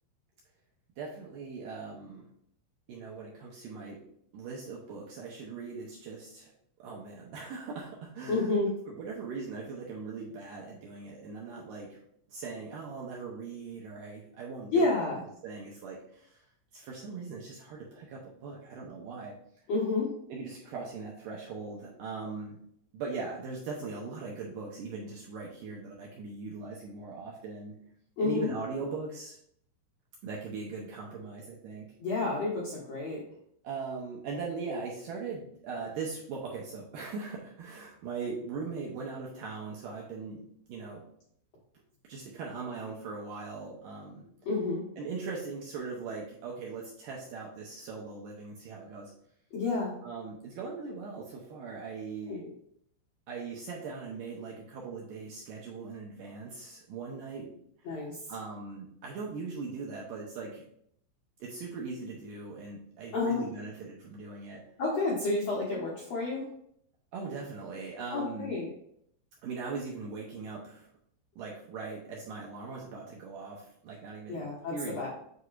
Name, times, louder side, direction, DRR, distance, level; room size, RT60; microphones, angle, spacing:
voice 1, 1.0-2.3 2.9-4.0 4.3-6.5 6.8-8.6 8.9-12.0 12.3-15.1 15.4-16.4 16.7-19.3 20.3-22.6 22.9-27.8 28.2-29.4 30.2-31.9 33.6-41.1 42.1-44.3 45.0-49.1 50.0-52.4 53.3-57.5 57.8-58.0 58.3-60.6 61.4-64.6 67.1-68.5 69.4-70.9 71.4-75.1, right 4 dB, 85° right, -3 dB, 1.9 m, -40 dB
voice 2, 8.3-8.7 14.7-15.2 19.7-20.1 28.2-28.5 32.0-33.2 44.4-44.8 49.5-49.9 52.3-52.5 57.8-58.2 63.1-63.4 64.8-66.5 68.1-68.7 74.3-75.1, left 3 dB, 75° left, -5 dB, 1.5 m, -30 dB
8.0 x 4.8 x 2.5 m, 0.68 s
omnidirectional pair, 5.1 m